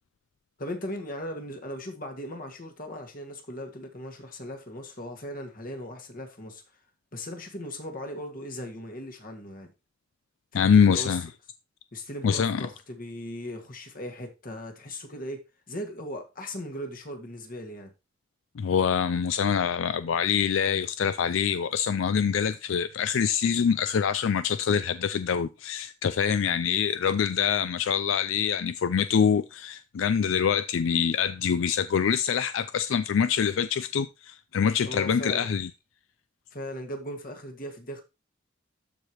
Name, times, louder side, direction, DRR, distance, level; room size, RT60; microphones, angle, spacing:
voice 1, 0.6-6.6 7.1-9.7 10.5-11.2 11.9-15.4 15.7-17.9 34.8-35.5 36.5-38.0, left 1 dB, 45° left, 1.9 m, -38 dB
voice 2, 10.5-11.3 12.2-12.7 18.6-35.7, left 7 dB, 70° left, 0.4 m, -25 dB
13.0 x 4.9 x 3.0 m
head